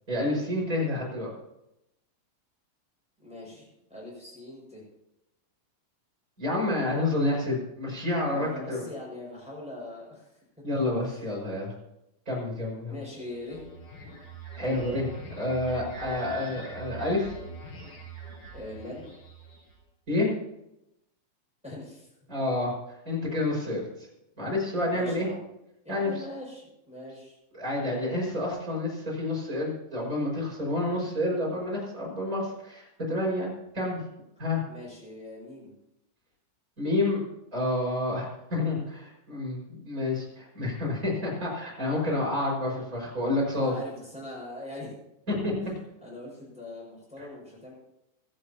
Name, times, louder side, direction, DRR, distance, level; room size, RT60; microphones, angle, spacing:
voice 1, 0.1-1.3 6.4-8.8 10.6-11.7 12.3-12.9 14.6-15.1 15.4-17.3 20.1-20.3 22.3-22.7 23.0-23.8 24.4-25.3 25.9-26.1 27.5-34.0 34.4-34.6 36.8-37.2 37.5-43.7 45.3-45.4, left 2 dB, 15° right, -4 dB, 5.6 m, -29 dB
voice 2, 3.2-4.8 8.2-10.3 11.1-11.2 12.9-13.6 18.5-19.1 21.6-22.1 24.9-25.4 25.8-27.4 34.6-35.8 43.4-44.9 45.6-47.7, left 1 dB, ahead, -4 dB, 6.0 m, -42 dB
sound 1, 13.2-19.8, right 3 dB, 55° left, 6.4 m, -43 dB
26.0 x 10.5 x 2.9 m, 0.87 s
omnidirectional pair, 5.6 m